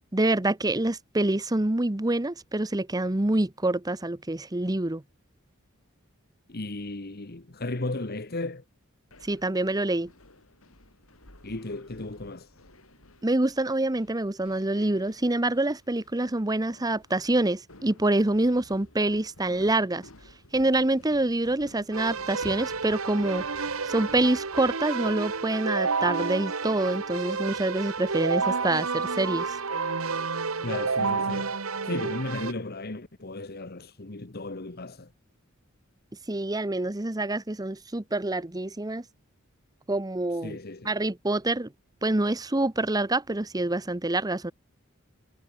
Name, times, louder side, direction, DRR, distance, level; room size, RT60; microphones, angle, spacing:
voice 1, 0.1-5.0 9.2-10.1 13.2-20.0 20.5-23.4 23.8-29.6 36.3-39.0 39.9-40.6 40.8-41.7 42.0-44.5, right 2 dB, 20° right, 0.9 m, -26 dB
voice 2, 6.5-8.6 11.4-12.5 30.6-31.6 31.8-35.1 40.4-40.9, left 2 dB, 50° left, 1.5 m, -35 dB
sound 1, 9.1-25.6, left 1 dB, 80° left, 6.5 m, -54 dB
Keyboard (musical), 21.9-32.5, right 4 dB, 75° right, 1.4 m, -30 dB
head